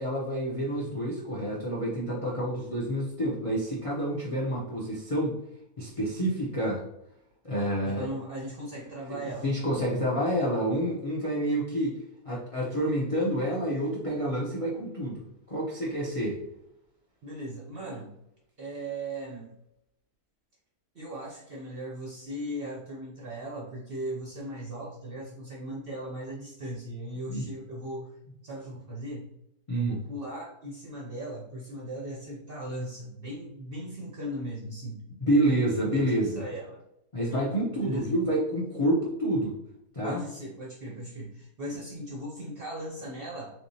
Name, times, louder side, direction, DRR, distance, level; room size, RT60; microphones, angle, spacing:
voice 1, 0.0-5.4 5.8-6.8 7.4-8.1 9.1-12.0 12.2-16.4 27.3-27.5 29.7-30.0 35.3-36.4 37.1-39.6 39.9-40.2, right 1 dB, 65° left, -4 dB, 0.3 m, -28 dB
voice 2, 7.8-9.5 17.2-18.1 18.6-19.5 20.9-28.2 28.4-29.3 29.7-35.0 35.9-36.8 37.3-37.4 37.7-38.1 40.0-43.7, right 1 dB, 55° right, -3 dB, 0.6 m, -38 dB
3.5 x 3.2 x 2.7 m, 0.81 s
omnidirectional pair, 1.7 m